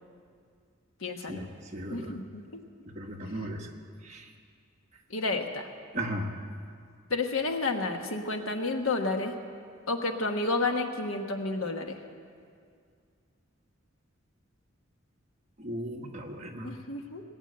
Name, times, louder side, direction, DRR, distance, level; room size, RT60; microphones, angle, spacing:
voice 1, 1.0-1.4 1.9-2.6 5.1-5.7 7.1-9.4 9.9-12.0 16.6-17.2, left 3 dB, 85° left, 5 dB, 1.3 m, -31 dB
voice 2, 1.7-2.1 2.9-3.7 4.1-4.2 5.9-6.3 15.6-16.7, right 1 dB, 35° right, 1 dB, 1.5 m, -36 dB
19.5 x 8.3 x 8.6 m, 2.2 s
head